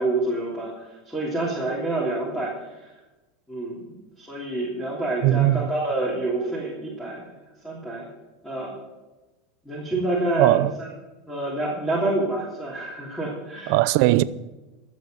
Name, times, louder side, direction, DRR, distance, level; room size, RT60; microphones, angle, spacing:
voice 1, 0.0-2.9 3.5-3.8 4.2-7.2 7.6-8.1 8.4-8.8 9.6-10.9 11.3-13.8, right 2 dB, 5° left, 3.2 m, -27 dB
voice 2, 5.2-5.7 10.4-10.7 13.7-14.2, right 16 dB, 60° right, 0.6 m, -19 dB
13.5 x 7.4 x 7.9 m
supercardioid pair, 140°, 0 cm